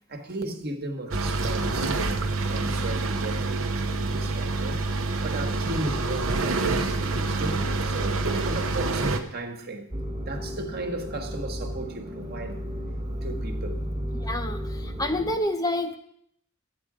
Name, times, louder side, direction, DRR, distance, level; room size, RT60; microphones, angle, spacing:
voice 1, 0.1-2.0 2.3-9.9 10.3-12.6 13.2-13.8, right 2 dB, 50° right, 1.3 m, -35 dB
sound 1, 1.1-9.2, right 3 dB, 85° right, 0.9 m, -27 dB
sound 2, 9.9-15.4, equal, 25° right, 1.2 m, -33 dB
voice 2, 14.2-16.0, left 1 dB, 20° left, 0.6 m, -28 dB
12.5 x 8.5 x 4.9 m
head